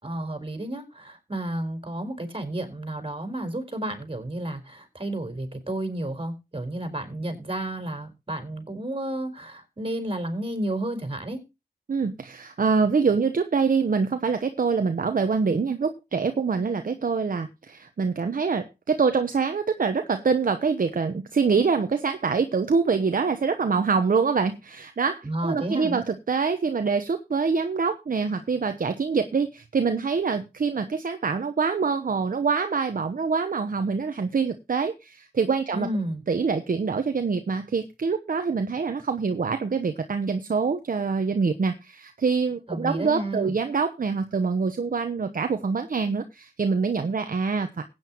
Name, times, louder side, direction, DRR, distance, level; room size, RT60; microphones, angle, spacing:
voice 1, 0.0-11.4 25.2-26.0 35.7-36.2 42.7-43.5, right 1 dB, 30° right, 4.2 m, -31 dB
voice 2, 11.9-35.9 36.3-47.8, right 5 dB, 55° right, 1.0 m, -25 dB
16.0 x 9.1 x 3.0 m
cardioid pair, 50°, 17 cm